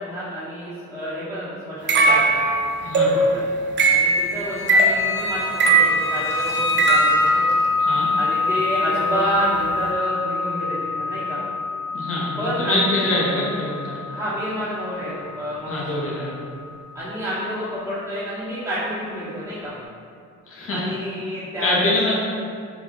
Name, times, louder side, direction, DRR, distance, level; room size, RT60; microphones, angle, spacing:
voice 1, 0.0-2.4 2.9-3.4 3.9-5.8 6.1-7.4 8.2-11.4 12.4-12.8 13.1-13.4 14.1-16.3 16.9-19.8 20.7-22.1, equal, 10° right, -12 dB, 0.9 m, -29 dB
sound 1, 1.9-7.4, right 2 dB, 40° right, 0.4 m, -19 dB
voice 2, 2.8-3.1 7.8-8.1 11.9-14.0 15.7-16.3 20.5-20.9 21.6-22.1, left 2 dB, 45° left, -5 dB, 1.0 m, -24 dB
sound 2, 4.8-17.3, left 3 dB, 80° left, 1.1 m, -26 dB
3.6 x 2.3 x 3.6 m, 2.2 s
cardioid pair, 90°, 30 cm